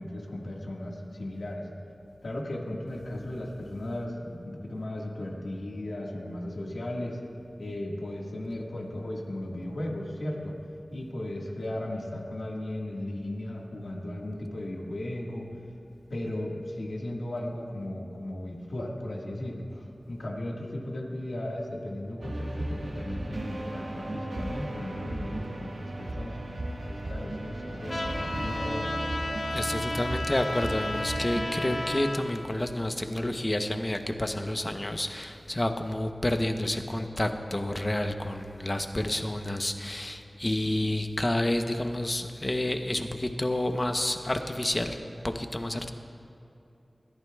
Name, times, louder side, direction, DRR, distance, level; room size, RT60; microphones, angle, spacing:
voice 1, 0.0-1.7 2.2-7.2 7.6-10.6 10.9-15.5 16.1-26.4 26.8-29.0, left 1 dB, 75° left, -1 dB, 1.7 m, -36 dB
sound 1, 22.2-32.0, right 1 dB, 85° right, 1.5 m, -35 dB
Trumpet, 27.9-32.2, left 1 dB, 55° left, 1.1 m, -33 dB
voice 2, 29.5-45.0 45.2-45.9, left 1 dB, 30° left, 6 dB, 0.8 m, -29 dB
20.5 x 14.0 x 2.3 m, 2.8 s
wide cardioid pair, 70°, 0 cm